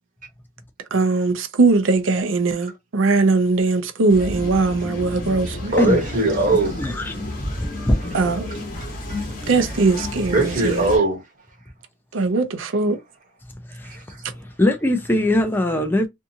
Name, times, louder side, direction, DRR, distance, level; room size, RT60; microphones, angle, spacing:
voice 1, 0.9-5.8 8.1-8.5 9.5-10.9 12.1-13.0, right 3 dB, 70° right, 0.6 m, -20 dB
sound 1, 4.1-11.0, left 1 dB, 40° left, 1.0 m, -31 dB
voice 2, 5.7-6.8 9.1-9.2 10.3-11.2 13.8-14.2, right 2 dB, 40° right, 0.9 m, -20 dB
voice 3, 6.7-7.1 7.6-8.0 13.7-14.0 14.4-16.1, left 1 dB, 10° left, 0.4 m, -21 dB
2.7 x 2.4 x 2.7 m
head